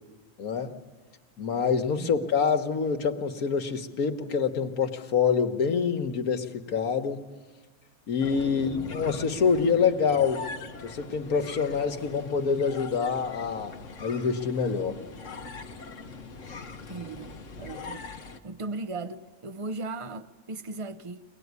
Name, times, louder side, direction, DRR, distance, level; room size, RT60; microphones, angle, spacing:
voice 1, 0.4-0.7 1.4-7.2 8.1-10.4 10.8-13.7 14.0-15.0, left 6 dB, 85° left, 1.7 m, -26 dB
sound 1, 8.2-18.4, left 4 dB, 60° left, 1.4 m, -41 dB
voice 2, 8.4-8.9 16.9-18.1 18.4-21.2, right 3 dB, 35° right, 0.6 m, -37 dB
23.5 x 19.0 x 9.6 m
omnidirectional pair, 1.5 m